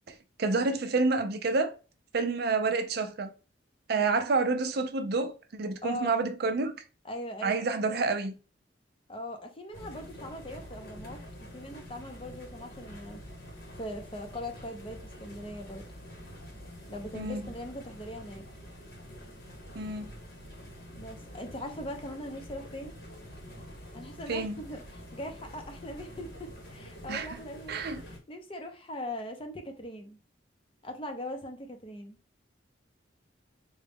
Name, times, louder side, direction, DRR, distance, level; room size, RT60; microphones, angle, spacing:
voice 1, 0.1-1.7 2.1-3.3 3.9-6.7 7.4-8.3 17.1-17.4 19.7-20.1 24.3-24.6 27.1-27.4 27.7-28.0, right 3 dB, 55° right, 0.4 m, -29 dB
voice 2, 5.8-6.1 7.0-7.7 9.1-11.2 11.5-13.2 13.8-15.8 16.9-18.5 21.0-22.9 23.9-30.2 30.8-32.2, left 1 dB, 30° left, 0.6 m, -40 dB
sound 1, 9.7-28.2, equal, 50° left, 1.0 m, -47 dB
3.9 x 2.2 x 3.4 m
head